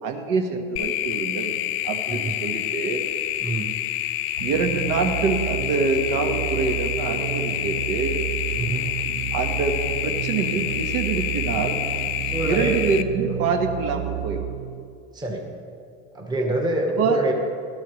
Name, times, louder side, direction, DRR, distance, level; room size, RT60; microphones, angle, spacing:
voice 1, 0.0-1.6 1.8-3.0 4.4-8.2 9.3-11.8 12.4-14.5 17.0-17.2, right 4 dB, 65° right, 4 dB, 1.5 m, -25 dB
sound 1, 0.8-13.0, left 13 dB, 40° left, 0.5 m, -28 dB
voice 2, 3.4-3.7 8.5-8.9 12.2-12.7 13.2-13.4 15.1-15.5 16.1-17.3, right 2 dB, 15° right, 1 dB, 1.2 m, -26 dB
sound 2, 4.4-15.1, right 16 dB, 85° right, 0.5 m, -32 dB
18.0 x 12.5 x 3.2 m, 2.3 s
supercardioid pair, 155°, 32 cm